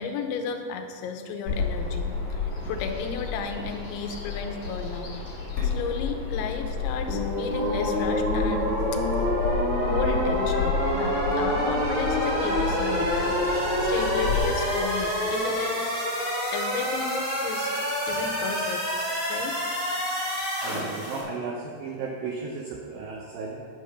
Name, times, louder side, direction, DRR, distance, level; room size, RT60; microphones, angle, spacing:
voice 1, 0.0-2.1 2.7-5.2 5.6-8.8 9.1-9.3 9.8-13.3 13.8-15.9 16.5-18.9 19.3-19.6, left 5 dB, 90° left, 5 dB, 3.2 m, -33 dB
Bird vocalization bird call bird song, 1.5-14.4, left 4 dB, 35° left, 2.9 m, -31 dB
sound 1, 7.1-21.2, equal, 25° right, 2.0 m, -28 dB
sound 2, 7.5-14.8, equal, 60° right, 3.0 m, -32 dB
voice 2, 20.6-23.7, right 4 dB, 85° right, 0 dB, 2.0 m, -35 dB
10.5 x 6.6 x 5.6 m, 2.3 s
omnidirectional pair, 5.1 m